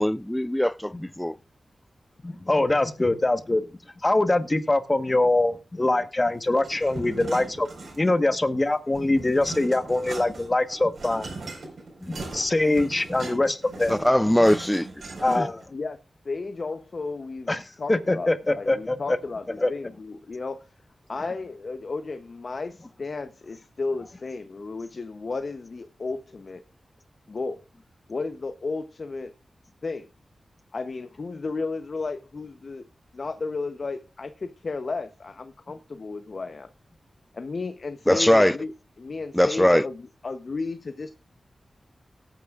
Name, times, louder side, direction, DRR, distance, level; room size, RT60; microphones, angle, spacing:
voice 1, 0.0-1.4 13.9-14.9 15.3-15.5 38.1-38.5 39.3-39.9, left 1 dB, 10° left, 0.5 m, -20 dB
voice 2, 2.2-3.6 4.0-7.7 8.0-11.3 12.0-13.9 15.2-15.6 17.5-19.2 19.6-19.7, left 2 dB, 30° left, 1.3 m, -23 dB
sound 1, 6.6-8.3 8.6-15.6, right 3 dB, 75° right, 4.6 m, -39 dB
voice 3, 16.2-20.7 21.1-26.6 27.3-27.6 28.1-29.3 29.8-30.1 30.7-32.9 33.1-36.7 37.3-41.1, left 3 dB, 60° left, 0.8 m, -33 dB
17.5 x 9.1 x 2.4 m
cardioid pair, 45°, 0 cm